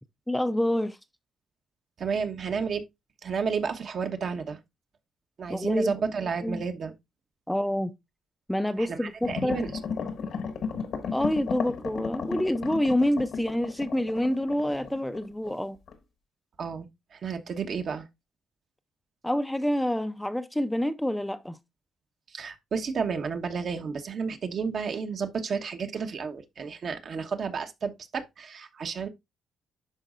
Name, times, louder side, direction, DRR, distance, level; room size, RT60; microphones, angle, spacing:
voice 1, 0.3-1.0 5.5-5.9 6.4-6.6 7.5-7.9 8.5-9.1 9.4-9.6 11.1-15.8 19.2-21.6, left 1 dB, 5° left, 0.5 m, -27 dB
voice 2, 2.0-2.8 3.2-4.6 5.4-6.9 8.8-9.8 16.6-18.1 22.3-29.1, right 5 dB, 55° right, 1.1 m, -32 dB
sound 1, 9.2-15.5 15.9-16.0, left 5 dB, 65° left, 1.3 m, -34 dB
11.0 x 4.0 x 2.5 m
cardioid pair, 90°, 0 cm